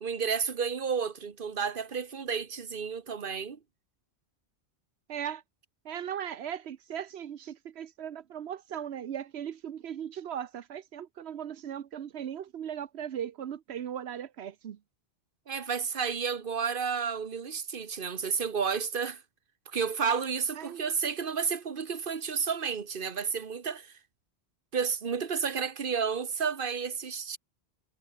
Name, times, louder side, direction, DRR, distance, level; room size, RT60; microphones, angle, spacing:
voice 1, 0.0-3.6 15.5-19.2 19.7-23.9 24.7-27.4, right 6 dB, 55° right, 1.5 m, -31 dB
voice 2, 5.1-5.4 5.8-14.8 20.6-20.8, right 9 dB, 90° right, 1.1 m, -38 dB
omnidirectional pair, 1.1 m